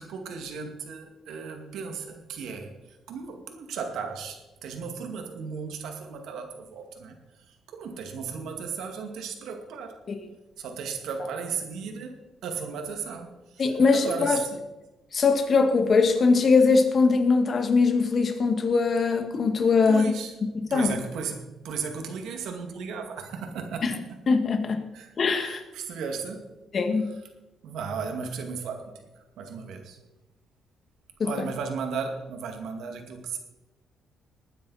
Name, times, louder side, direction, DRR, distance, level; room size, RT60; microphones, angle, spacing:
voice 1, 0.0-10.0 10.6-12.2 12.4-14.7 19.9-20.4 20.7-24.0 24.9-26.5 27.1-27.2 27.6-30.0 31.2-33.4, right 5 dB, 80° right, 4 dB, 2.3 m, -35 dB
voice 2, 13.6-14.4 15.1-20.0 20.5-20.9 23.8-23.9 24.3-24.8 25.2-25.6 26.7-27.1 31.2-31.3, left 4 dB, 45° left, 6 dB, 2.0 m, -21 dB
20.0 x 9.6 x 4.3 m, 1.0 s
cardioid pair, 90°, 0 cm